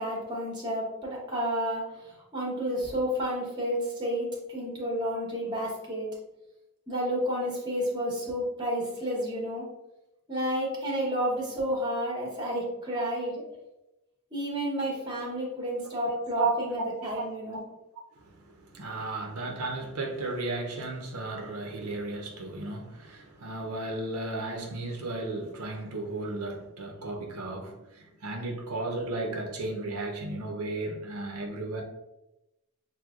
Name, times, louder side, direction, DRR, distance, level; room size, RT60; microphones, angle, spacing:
voice 1, 0.0-6.1 6.9-9.7 10.3-13.4 14.3-17.6, equal, 20° right, 1.0 m, -31 dB
voice 2, 15.8-17.3 17.5-17.6 18.1-31.8, right 2 dB, 85° right, 0.6 m, -34 dB
6.1 x 2.1 x 2.4 m
head